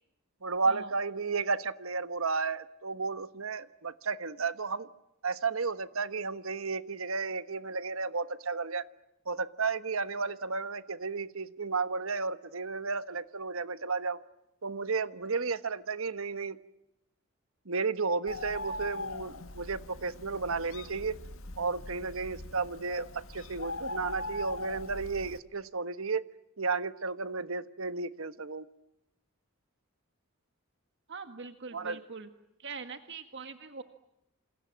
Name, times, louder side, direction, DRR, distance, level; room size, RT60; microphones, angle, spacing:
voice 1, 0.4-4.9 5.2-8.8 9.3-14.2 14.6-16.6 17.7-21.1 21.6-26.2 26.6-28.7 31.7-32.0, right 4 dB, 75° right, 13 dB, 1.3 m, -33 dB
Bird, 18.3-25.4, left 2 dB, 75° left, 2.0 m, -41 dB
voice 2, 31.1-32.3 32.6-33.8, right 5 dB, 60° right, 8 dB, 1.7 m, -43 dB
28.0 x 28.0 x 7.5 m, 0.87 s
head